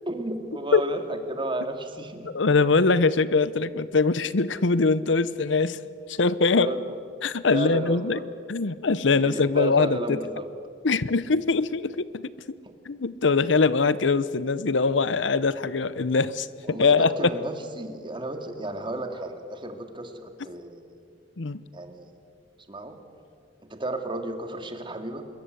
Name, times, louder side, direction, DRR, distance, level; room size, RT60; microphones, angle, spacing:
voice 1, 0.1-2.3 6.5-7.0 7.5-8.2 9.2-10.5 16.6-20.9 21.7-22.1 22.7-23.0 23.7-25.3, right 1 dB, 25° right, 6 dB, 2.2 m, -33 dB
voice 2, 2.3-5.8 6.1-6.7 7.2-8.2 8.5-10.2 10.8-12.3 12.9-17.1 21.4-21.6, left 4 dB, 80° left, 16 dB, 0.8 m, -22 dB
26.0 x 22.0 x 8.1 m, 2.3 s
head